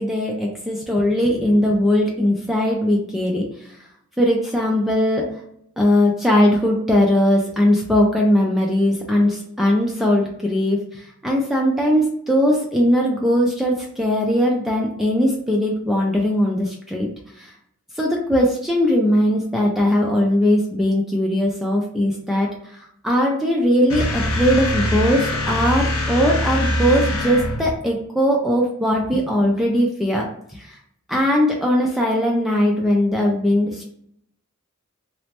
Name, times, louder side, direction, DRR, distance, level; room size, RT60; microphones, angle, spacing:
voice 1, 0.0-3.8 4.2-5.3 5.8-17.1 17.3-17.5 17.9-30.8 31.1-33.9, equal, ahead, -2 dB, 0.3 m, -19 dB
sound 1, 23.9-27.8, left 1 dB, 80° left, 0.6 m, -23 dB
3.1 x 2.0 x 2.8 m, 0.71 s
head